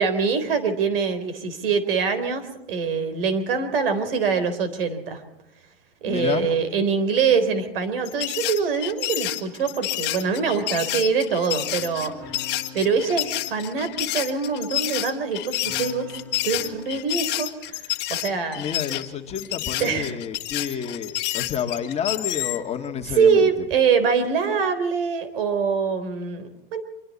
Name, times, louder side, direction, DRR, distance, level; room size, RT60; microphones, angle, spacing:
voice 1, 0.0-5.2 6.0-12.1 12.7-16.1 16.4-18.6 19.8-20.2 20.6-20.7 23.2-26.8, right 5 dB, 70° right, 10 dB, 3.9 m, -24 dB
voice 2, 6.0-6.5 18.6-23.5, left 8 dB, 20° left, 4 dB, 1.9 m, -29 dB
sound 1, 8.0-22.6, left 16 dB, 35° left, 1.6 m, -29 dB
sound 2, 11.6-14.8 15.6-17.0, left 4 dB, 5° left, 6.2 m, -43 dB
25.0 x 24.5 x 4.2 m, 0.87 s
hypercardioid pair, 130°, 29 cm